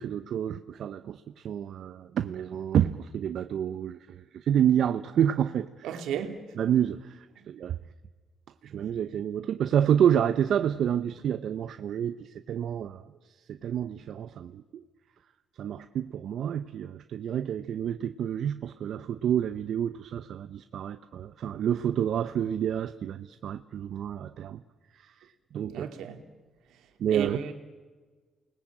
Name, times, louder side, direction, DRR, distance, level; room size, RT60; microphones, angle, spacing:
voice 1, 0.0-5.9 6.6-7.1 7.5-7.8 8.6-12.2 12.5-13.0 13.5-14.8 15.6-24.6 25.5-25.9 27.0-27.4, right 9 dB, 70° right, 0.8 m, -28 dB
voice 2, 5.8-6.5 25.6-26.2 27.1-27.5, right 8 dB, 85° right, 2.7 m, -33 dB
29.0 x 20.5 x 8.8 m
cardioid pair, 90°, 0 cm